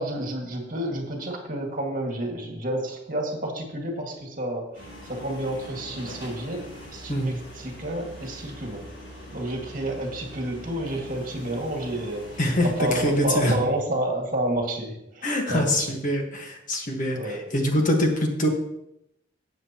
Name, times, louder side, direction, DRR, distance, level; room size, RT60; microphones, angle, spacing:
voice 1, 0.0-8.9 9.3-16.0 17.2-17.4, right 1 dB, 45° right, 1 dB, 2.0 m, -30 dB
sound 1, 4.7-13.5, equal, 70° left, 4.3 m, -42 dB
voice 2, 12.4-13.6 15.2-18.5, left 1 dB, 45° left, 2 dB, 1.5 m, -24 dB
13.0 x 8.0 x 3.0 m, 0.81 s
head